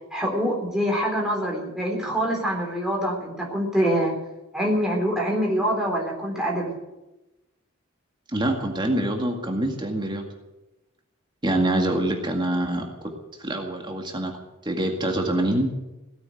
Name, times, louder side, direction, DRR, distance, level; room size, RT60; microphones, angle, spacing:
voice 1, 0.1-4.1 4.5-6.7, equal, 5° right, -2 dB, 3.8 m, -25 dB
voice 2, 8.3-10.2 11.4-12.9 13.4-14.3 14.6-15.7, right 1 dB, 20° right, 2 dB, 2.1 m, -25 dB
17.5 x 8.9 x 9.3 m, 0.99 s
head